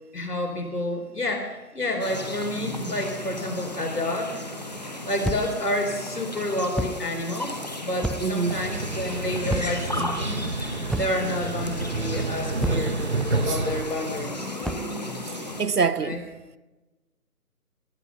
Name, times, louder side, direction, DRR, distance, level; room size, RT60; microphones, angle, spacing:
voice 1, 0.1-4.4 5.0-10.5 10.9-13.0 13.3-14.5 16.0-16.2, left 1 dB, 75° left, 4.6 m, -29 dB
sound 1, 2.0-15.6, left 1 dB, 25° left, 1.5 m, -35 dB
sound 2, 5.2-5.6 6.7-7.1 8.0-8.4 9.5-9.9 10.9-11.3 12.6-13.0 14.6-14.9, right 1 dB, ahead, 0.4 m, -30 dB
voice 2, 8.2-8.6 10.0-10.1 13.4-13.6 15.2-16.2, right 5 dB, 75° right, 1.1 m, -26 dB
sound 3, 8.5-13.8, right 3 dB, 45° right, 1.0 m, -29 dB
20.0 x 9.9 x 5.7 m
figure-of-eight pair, 175°, 46 cm